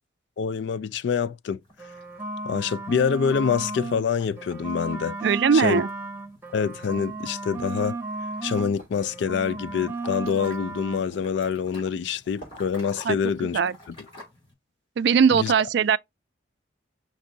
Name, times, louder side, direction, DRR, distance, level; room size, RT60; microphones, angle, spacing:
voice 1, 0.4-1.6 2.4-5.2 5.5-5.8 6.5-8.0 8.4-13.6 15.3-15.5, left 6 dB, 65° left, 0.3 m, -26 dB
sound 1, 1.6-14.5, left 1 dB, 30° left, 3.0 m, -52 dB
sound 2, 1.7-4.0 4.4-8.7 9.0-11.0, right 2 dB, 10° right, 0.9 m, -34 dB
voice 2, 5.2-5.9 13.0-13.2 13.4-13.7 15.0-16.0, right 6 dB, 60° right, 0.3 m, -20 dB
sound 3, 6.9-7.1 7.9-8.0 8.6-8.9 10.1-10.2 11.0-11.4 11.8-11.9 12.4-12.6, right 2 dB, 45° left, 2.4 m, -45 dB
6.0 x 2.7 x 2.6 m
head